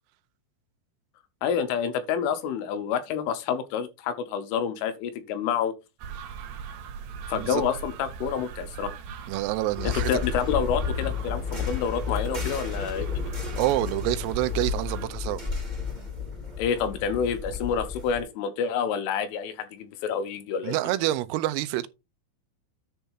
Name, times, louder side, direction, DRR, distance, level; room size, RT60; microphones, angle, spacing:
voice 1, 1.4-5.7 7.3-8.9 9.8-13.3 16.6-20.8, left 7 dB, 80° left, 3.4 m, -28 dB
sound 1, 6.0-15.1, right 6 dB, 70° right, 3.0 m, -39 dB
voice 2, 9.3-10.2 13.6-15.4 20.6-21.9, right 16 dB, 85° right, 3.2 m, -27 dB
sound 2, 9.8-18.2, left 6 dB, 20° right, 1.2 m, -32 dB
10.0 x 3.4 x 5.6 m
omnidirectional pair, 5.9 m